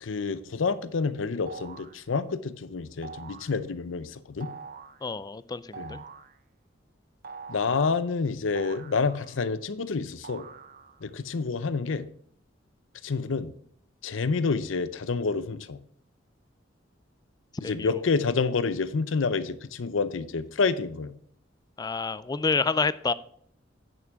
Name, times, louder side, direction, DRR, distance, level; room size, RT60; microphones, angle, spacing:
voice 1, 0.0-4.5 5.8-6.0 7.5-10.5 11.0-12.1 13.0-13.5 14.0-15.8 17.6-21.1, left 4 dB, 85° left, 0.6 m, -28 dB
sound 1, 1.5-2.0 3.0-3.6 4.4-5.0 5.7-6.4 7.2-7.9 8.5-9.5 10.2-11.1, right 5 dB, 45° right, 0.6 m, -44 dB
voice 2, 5.0-6.0 17.6-18.0 21.8-23.1, left 4 dB, 20° left, 0.3 m, -28 dB
9.4 x 6.0 x 4.6 m
head